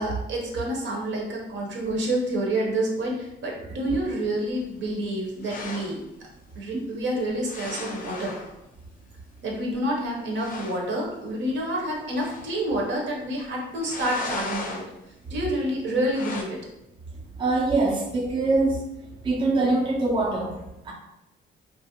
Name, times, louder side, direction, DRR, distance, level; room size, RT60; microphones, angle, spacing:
voice 1, 0.0-6.0 6.6-8.4 9.4-14.9 15.3-16.6, right 1 dB, 70° right, -1 dB, 0.8 m, -28 dB
sound 1, 5.4-6.0 7.4-8.5 9.7-9.8 10.0-10.1 10.3-10.8 12.1-12.6 13.8-14.9 16.1-16.4, left 3 dB, 45° left, 0.5 m, -36 dB
voice 2, 17.4-18.8 19.2-20.5 20.9-21.0, right 3 dB, 25° right, -1 dB, 0.5 m, -23 dB
2.5 x 2.0 x 2.8 m, 0.89 s
cardioid pair, 90°, 20 cm